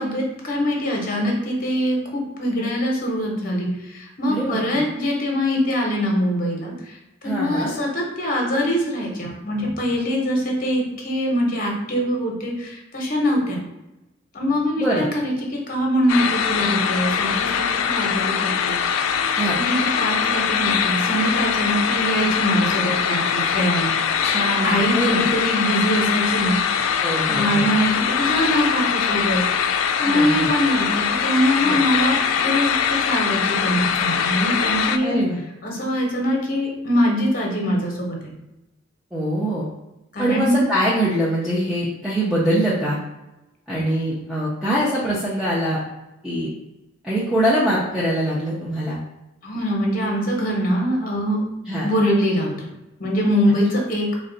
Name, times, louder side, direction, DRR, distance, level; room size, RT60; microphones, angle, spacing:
voice 1, 0.0-13.6 14.3-18.8 19.5-23.9 24.4-26.6 27.3-29.4 30.0-35.2 35.6-38.3 40.1-40.6 49.4-51.4 51.8-52.5 53.0-54.1, equal, 45° left, 0 dB, 0.9 m, -23 dB
voice 2, 4.3-4.8 7.2-7.7 9.6-9.7 14.8-15.1 19.3-19.6 24.2-25.2 27.0-27.7 30.0-30.5 31.6-31.8 35.0-35.4 39.1-39.7 40.2-43.0 43.7-45.8 46.2-46.5 47.0-49.0 51.7-51.9 53.8-53.9, right 1 dB, ahead, -9 dB, 0.5 m, -23 dB
sound 1, 16.1-35.0, left 7 dB, 90° left, 0.3 m, -22 dB
3.8 x 2.2 x 3.8 m, 0.95 s
head